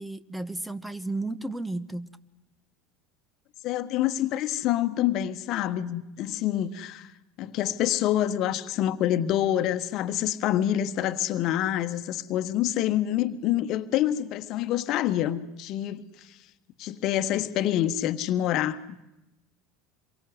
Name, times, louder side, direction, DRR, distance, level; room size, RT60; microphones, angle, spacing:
voice 1, 0.0-2.1, right 2 dB, 5° right, 1.2 m, -33 dB
voice 2, 3.6-7.1 7.4-16.0 16.8-18.8, left 12 dB, 50° left, 1.4 m, -26 dB
27.0 x 23.0 x 8.0 m
figure-of-eight pair, 75°, 0 cm